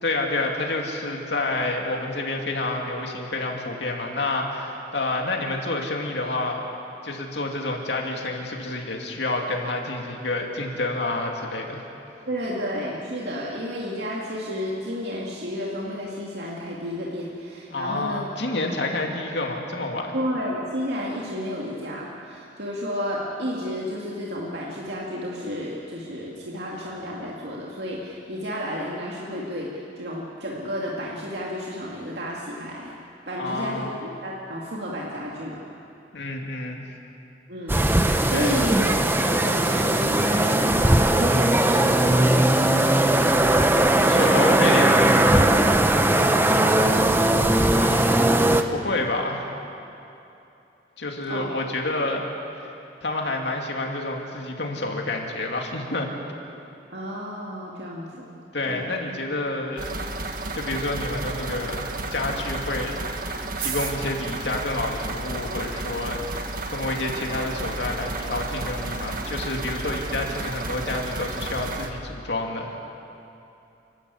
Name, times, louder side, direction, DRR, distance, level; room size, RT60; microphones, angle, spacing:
voice 1, 0.0-6.6 7.0-11.8 17.7-20.1 33.4-34.0 36.1-36.8 38.3-38.7 44.0-45.7 47.6-48.2 48.7-49.5 51.0-52.3 53.0-56.1 58.5-59.9 60.5-61.9 62.1-62.9 63.3-72.7, left 2 dB, 75° left, 1 dB, 2.5 m, -29 dB
voice 2, 12.3-18.3 20.1-33.0 33.3-35.6 37.5-42.3 46.2-46.5 51.3-51.5 56.9-58.3 58.6-58.9, equal, 70° right, -4 dB, 2.3 m, -31 dB
sound 1, 37.7-48.6, right 1 dB, 10° right, 0.9 m, -19 dB
sound 2, 59.8-71.9, right 2 dB, 50° right, 1.5 m, -32 dB
29.5 x 12.5 x 8.5 m, 2.8 s
head